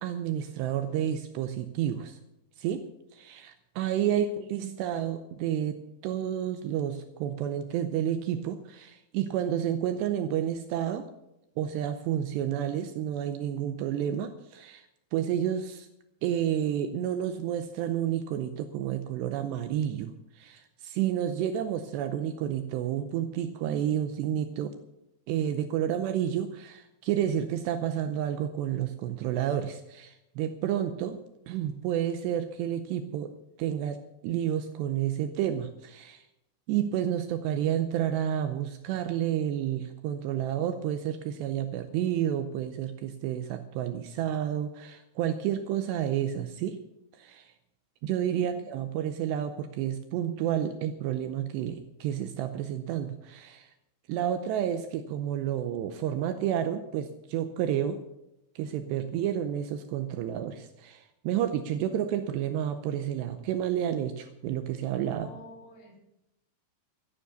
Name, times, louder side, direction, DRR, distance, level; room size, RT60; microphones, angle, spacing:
voice 1, 0.0-2.2 2.6-11.1 11.6-14.9 15.1-15.9 16.2-24.8 25.3-31.2 31.5-33.3 33.6-36.2 36.7-46.8 47.1-47.5 48.0-53.7 54.1-58.0 58.6-65.3, right 10 dB, 80° right, 8 dB, 2.5 m, -30 dB
voice 2, 4.1-4.4 48.3-48.7 64.9-66.0, left 2 dB, 90° left, -1 dB, 6.1 m, -48 dB
14.0 x 9.8 x 6.9 m, 0.88 s
omnidirectional pair, 5.6 m